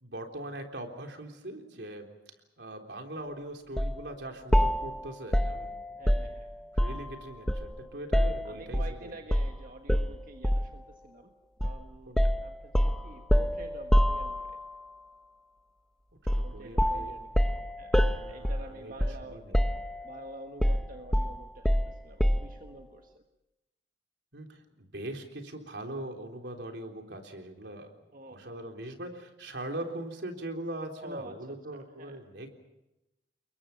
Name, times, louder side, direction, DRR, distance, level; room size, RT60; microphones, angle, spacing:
voice 1, 0.0-2.1 2.6-6.3 6.7-9.2 12.1-12.2 16.2-17.1 18.0-19.6 24.3-27.9 28.3-32.5, right 1 dB, 75° right, 4 dB, 3.6 m, -41 dB
sound 1, 3.8-4.0 4.5-7.1 7.5-8.9 9.3-9.5 9.9-10.8 11.6-11.8 12.2-14.7 16.3-16.5 16.8-19.3 19.5-20.2 20.6-22.6, equal, 5° left, 0.9 m, -27 dB
voice 2, 6.0-6.5 8.4-11.3 11.6-14.6 16.4-19.4 20.0-23.2 28.1-28.6 31.0-32.2, right 1 dB, 50° right, 4 dB, 1.6 m, -48 dB
29.0 x 22.5 x 5.8 m, 0.94 s
head